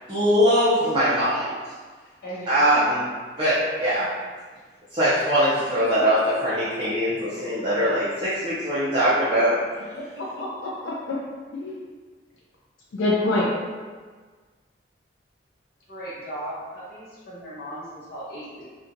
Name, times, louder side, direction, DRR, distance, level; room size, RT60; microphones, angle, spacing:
voice 1, 0.1-1.5 2.5-3.0 3.4-4.1 4.9-9.6, equal, 25° right, -12 dB, 0.5 m, -21 dB
voice 2, 10.2-11.2 11.5-11.8 12.9-13.5, left 2 dB, 85° left, -5 dB, 0.4 m, -26 dB
voice 3, 15.9-18.7, right 1 dB, 50° left, -9 dB, 0.8 m, -37 dB
2.7 x 2.3 x 2.5 m, 1.5 s
head